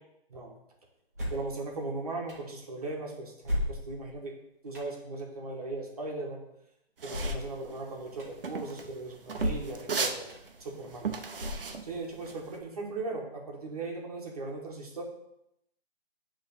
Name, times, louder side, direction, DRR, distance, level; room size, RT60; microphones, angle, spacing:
sound 1, 1.1-1.5 2.3-2.4 3.4-4.1 4.7-4.9 7.1-7.5 8.2-8.3 9.3-9.8 10.3-10.4 11.4-11.9, left 1 dB, 15° right, 0.9 m, -33 dB
voice 1, 1.3-4.3 4.6-6.4 7.0-10.3 10.6-11.1 11.8-15.0, right 2 dB, 35° right, 0 dB, 1.3 m, -38 dB
sound 2, 7.0-12.6, right 5 dB, 60° right, 0.8 m, -36 dB
8.9 x 3.3 x 4.2 m, 0.80 s
hypercardioid pair, 175°, 31 cm